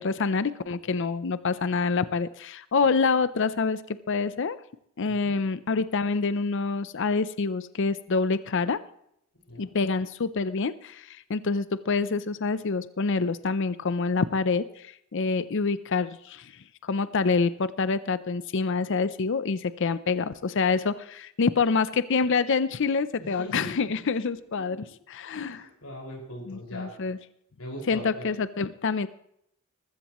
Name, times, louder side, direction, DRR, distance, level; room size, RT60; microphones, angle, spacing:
voice 1, 0.0-4.6 5.0-8.8 9.6-25.7 26.5-27.2 27.9-29.1, left 4 dB, 55° left, 15 dB, 0.6 m, -27 dB
voice 2, 5.1-5.4 9.5-9.7 23.2-23.9 24.7-24.8 25.3-26.9 27.6-28.3, equal, 75° left, -1 dB, 5.5 m, -40 dB
20.5 x 15.0 x 3.1 m, 0.75 s
head